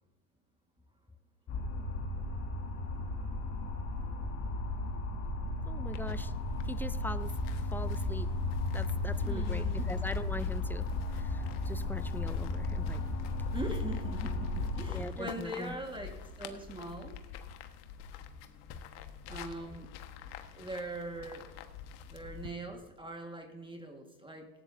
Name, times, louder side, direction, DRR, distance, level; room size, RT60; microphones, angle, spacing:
sound 1, 1.5-15.0, left 2 dB, 35° left, 2.5 m, -34 dB
voice 1, 3.0-3.5 3.8-4.8 5.0-5.1 9.2-9.9 13.5-16.1 16.4-17.2 19.3-19.9 20.5-21.5 22.1-24.5, right 1 dB, 10° right, 3 dB, 1.7 m, -42 dB
voice 2, 5.7-6.3 6.7-7.3 7.7-8.3 8.7-10.9 11.2-13.2 14.9-15.7, left 2 dB, 5° left, 14 dB, 0.6 m, -41 dB
sound 2, 5.9-22.5, left 8 dB, 60° left, 1.5 m, -48 dB
18.0 x 15.5 x 2.7 m, 1.1 s
hypercardioid pair, 90°, 44 cm